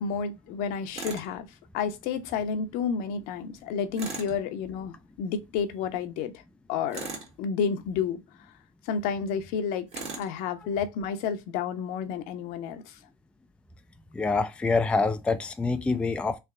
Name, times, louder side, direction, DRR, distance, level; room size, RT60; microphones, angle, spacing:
voice 1, 0.0-1.5 1.7-6.3 6.7-7.1 7.4-8.2 8.9-9.9 10.2-12.9, left 6 dB, 60° left, 0.8 m, -30 dB
Tools, 1.0-1.3 4.0-4.4 6.9-7.4 9.9-10.3, right 4 dB, 40° right, 1.4 m, -37 dB
voice 2, 14.2-16.4, left 3 dB, 5° left, 0.3 m, -26 dB
3.3 x 2.9 x 3.7 m
hypercardioid pair, 75°, 17 cm